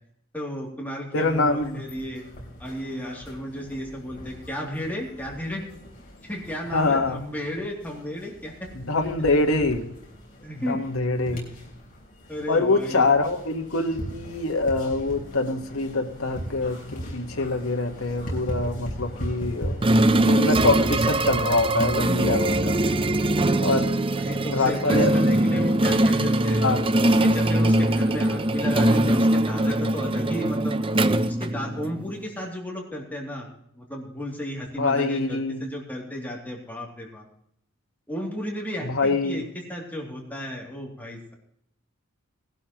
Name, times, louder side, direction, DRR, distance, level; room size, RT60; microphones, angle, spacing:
voice 1, 0.3-2.3 2.6-5.6 6.2-8.7 10.4-10.8 11.3-11.4 12.3-13.1 24.1-26.6 27.0-30.7 31.3-33.5 33.7-37.3 38.1-41.3, equal, 10° left, -2 dB, 2.7 m, -34 dB
voice 2, 1.1-1.8 6.7-7.2 8.9-9.9 10.7-11.5 12.5-19.7 20.2-22.8 23.6-23.9 24.5-25.2 26.6-26.9 34.8-35.7 38.8-39.4, left 3 dB, 75° left, 4 dB, 1.5 m, -24 dB
sound 1, 1.1-20.4, equal, 40° left, 3.8 m, -39 dB
sound 2, 19.8-32.1, right 1 dB, 25° right, 0.5 m, -22 dB
19.0 x 12.0 x 3.0 m, 0.70 s
head